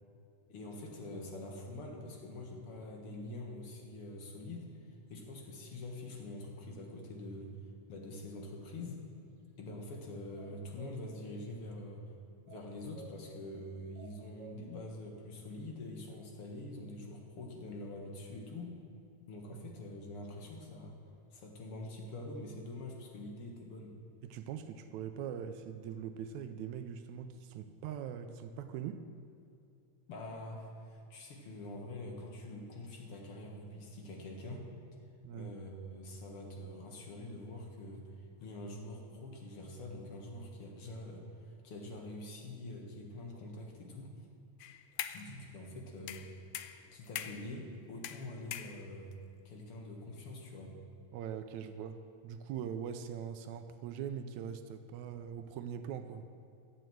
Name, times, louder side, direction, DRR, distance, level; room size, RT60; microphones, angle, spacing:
voice 1, 0.5-7.6 7.9-9.0 9.6-12.0 12.5-18.7 19.3-20.9 21.3-24.0 30.1-34.7 35.3-44.1 45.1-46.3 46.9-49.1 49.5-50.7, left 1 dB, 55° left, 1 dB, 2.2 m, -45 dB
sound 1, 10.3-11.0 12.5-13.1 13.9-14.6, right 7 dB, 45° right, 1.7 m, -53 dB
voice 2, 24.2-29.1 35.2-35.5 51.1-56.3, right 8 dB, 80° right, 8 dB, 1.9 m, -42 dB
sound 2, 44.6-45.3 46.1-47.5 48.0-49.1, left 11 dB, 90° left, 1.4 m, -42 dB
12.5 x 7.9 x 7.7 m, 2.5 s
omnidirectional pair, 3.4 m